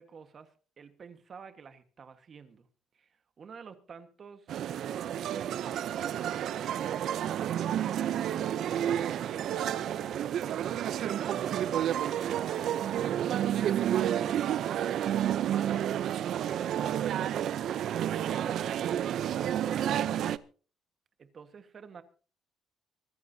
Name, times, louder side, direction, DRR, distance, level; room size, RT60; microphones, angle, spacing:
voice 1, 0.0-2.7 2.9-4.5 5.1-10.2 10.5-13.0 13.4-14.9 15.2-16.0 16.4-18.7 21.2-22.0, right 6 dB, 35° right, 10 dB, 1.4 m, -49 dB
sound 1, 4.5-20.4, right 10 dB, 55° right, 0.6 m, -30 dB
24.5 x 14.5 x 2.8 m, 0.38 s
cardioid pair, 160°, 0 cm